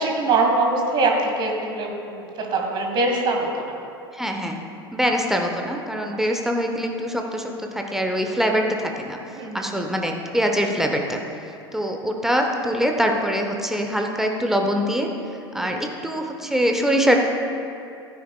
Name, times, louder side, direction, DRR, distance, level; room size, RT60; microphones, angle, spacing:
voice 1, 0.0-3.8 9.4-9.8 15.5-15.8, right 3 dB, 35° right, 1 dB, 1.7 m, -23 dB
voice 2, 4.1-4.6 4.9-9.2 9.5-11.2 11.7-15.1 15.5-17.2, equal, 5° right, 2 dB, 0.9 m, -23 dB
14.5 x 9.7 x 2.4 m, 2.6 s
figure-of-eight pair, 75°, 13 cm